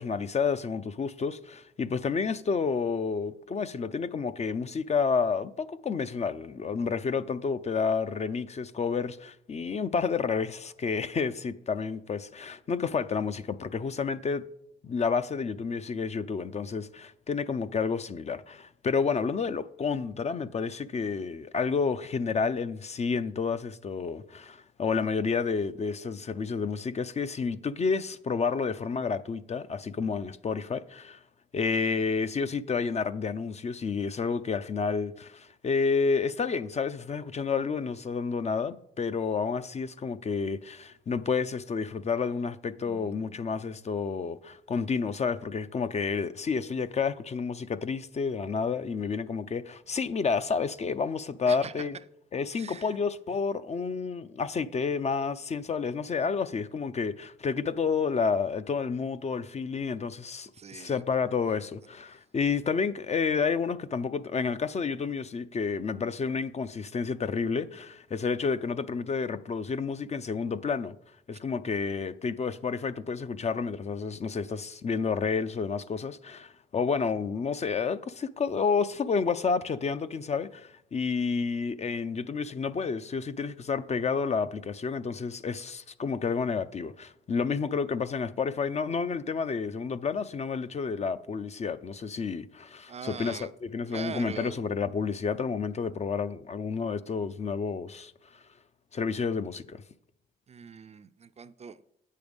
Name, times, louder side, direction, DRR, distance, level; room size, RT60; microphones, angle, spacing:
voice 1, 0.0-14.4 14.8-31.2 31.5-52.0 52.3-70.9 71.3-98.1 98.9-99.8, left 5 dB, 35° left, 0.5 m, -30 dB
voice 2, 42.8-43.4 51.5-51.9 52.5-53.0 60.5-61.0 92.9-93.5 93.9-94.6 100.5-101.8, right 6 dB, 35° right, 0.4 m, -42 dB
8.6 x 6.6 x 5.2 m
cardioid pair, 90°, 20 cm